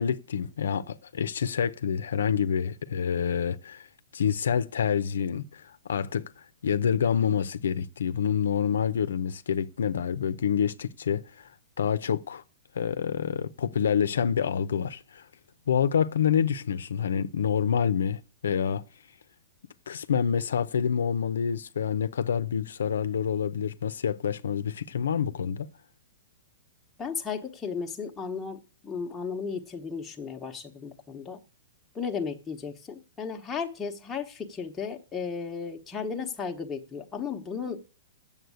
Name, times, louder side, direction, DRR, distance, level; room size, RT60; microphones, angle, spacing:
voice 1, 0.0-3.9 4.1-6.3 6.6-11.5 11.8-12.4 12.7-15.2 15.7-18.8 19.9-25.7, left 7 dB, 90° left, 0.6 m, -27 dB
voice 2, 27.0-31.4 31.9-37.8, left 5 dB, 10° left, 1.1 m, -35 dB
7.9 x 7.3 x 8.1 m
hypercardioid pair, 155°, 0 cm